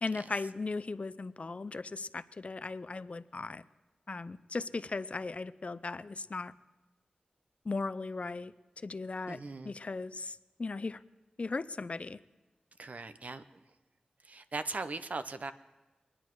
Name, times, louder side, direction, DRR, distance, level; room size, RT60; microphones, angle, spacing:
voice 1, 0.0-3.6 4.1-6.5 7.7-8.5 8.8-11.0 11.4-12.2, left 3 dB, 50° left, 15 dB, 0.5 m, -37 dB
voice 2, 9.3-9.7 12.8-13.4 14.2-15.5, right 3 dB, 60° right, 11 dB, 0.8 m, -39 dB
23.0 x 10.0 x 4.7 m, 1.1 s
cardioid pair, 55°, 3 cm